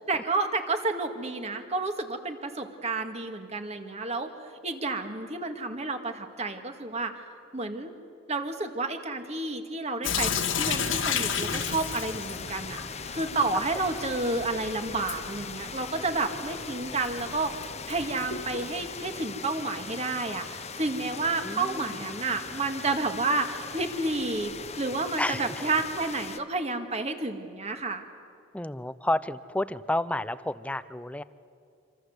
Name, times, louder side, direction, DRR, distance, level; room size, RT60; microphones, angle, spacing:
voice 1, 0.0-4.3 4.6-7.1 7.5-7.9 8.3-12.8 13.1-28.0, right 3 dB, 35° right, 6 dB, 2.1 m, -30 dB
Sink (filling or washing) / Drip, 10.0-18.9, left 7 dB, 80° left, 2.1 m, -34 dB
sound 1, 10.5-26.4, left 5 dB, 35° left, 1.1 m, -40 dB
voice 2, 21.4-22.0 25.2-25.6 28.5-31.2, left 1 dB, 5° left, 15 dB, 0.6 m, -31 dB
26.5 x 26.0 x 8.1 m, 2.5 s
head